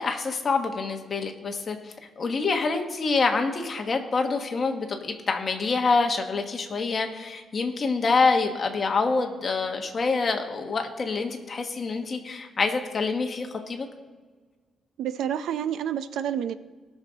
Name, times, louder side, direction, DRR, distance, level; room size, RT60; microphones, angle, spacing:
voice 1, 0.0-13.9, left 4 dB, 35° left, 4 dB, 1.2 m, -26 dB
voice 2, 15.0-16.5, right 9 dB, 85° right, 12 dB, 0.5 m, -29 dB
19.5 x 6.4 x 4.0 m, 1.4 s
cardioid pair, 155°, 0 cm